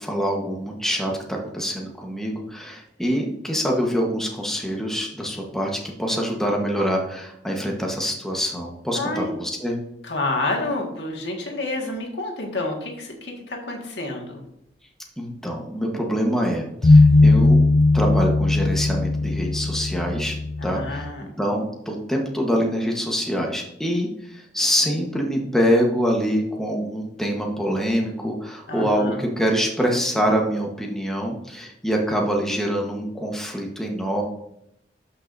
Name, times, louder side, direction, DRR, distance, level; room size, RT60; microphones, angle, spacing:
voice 1, 0.0-9.8 15.2-17.6 17.9-20.4 20.6-21.0 21.4-34.2, equal, 5° left, 0 dB, 1.1 m, -25 dB
voice 2, 8.9-9.3 10.0-14.4 17.1-17.5 20.6-21.3 28.7-29.2, left 2 dB, 80° left, 1 dB, 1.7 m, -29 dB
sound 1, 16.8-21.1, left 2 dB, 35° left, 0.3 m, -18 dB
12.5 x 5.6 x 2.6 m, 0.78 s
head